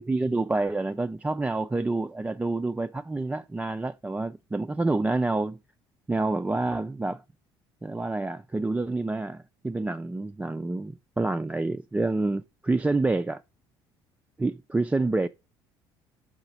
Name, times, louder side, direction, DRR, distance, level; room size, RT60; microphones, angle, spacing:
voice 1, 0.0-5.6 6.1-7.2 7.8-13.4 14.4-15.3, right 2 dB, 10° right, 0.3 m, -28 dB
5.5 x 4.8 x 5.0 m
hypercardioid pair, 55°, 13 cm